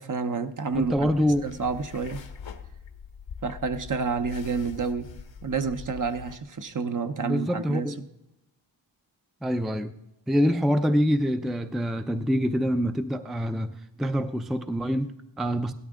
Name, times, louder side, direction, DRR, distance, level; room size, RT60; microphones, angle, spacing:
voice 1, 0.0-1.1 1.4-2.2 3.4-5.1 5.4-8.1, right 5 dB, 45° right, 0.8 m, -29 dB
sound 1, 0.7-6.4, left 6 dB, 75° left, 1.1 m, -43 dB
voice 2, 0.7-1.5 7.2-8.0 9.4-9.9 10.3-15.7, equal, ahead, 0.4 m, -25 dB
16.5 x 12.5 x 3.7 m
wide cardioid pair, 80°, 45 cm